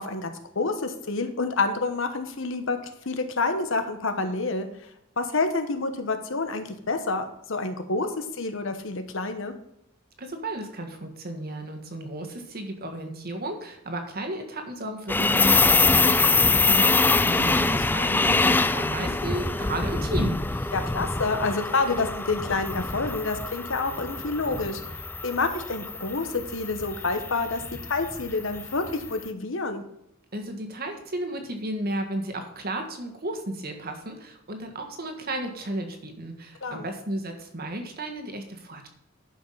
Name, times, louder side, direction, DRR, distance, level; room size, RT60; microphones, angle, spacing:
voice 1, 0.0-2.8 3.0-4.7 5.2-9.5 16.6-17.0 20.7-24.8 25.2-29.8 36.6-36.9, left 3 dB, 70° left, 8 dB, 1.1 m, -28 dB
voice 2, 10.2-20.7 30.3-38.9, right 1 dB, 50° right, 5 dB, 1.5 m, -34 dB
sound 1, 15.1-29.1, left 3 dB, 10° left, 0.3 m, -25 dB
11.0 x 5.8 x 5.5 m, 0.78 s
head